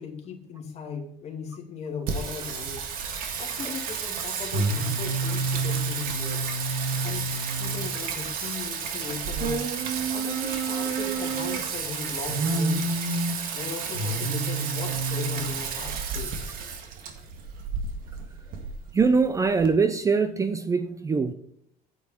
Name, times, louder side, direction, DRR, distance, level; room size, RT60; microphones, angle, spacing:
voice 1, 0.0-2.9 3.4-6.4 7.0-9.7 10.1-12.8 13.5-16.4, left 5 dB, 45° left, 1 dB, 2.5 m, -38 dB
Singing, 2.1-19.7, right 4 dB, 70° right, 1.8 m, -29 dB
voice 2, 18.9-21.3, right 4 dB, 20° right, 11 dB, 0.5 m, -23 dB
9.4 x 9.1 x 4.4 m, 0.73 s
cardioid pair, 145°, 16 cm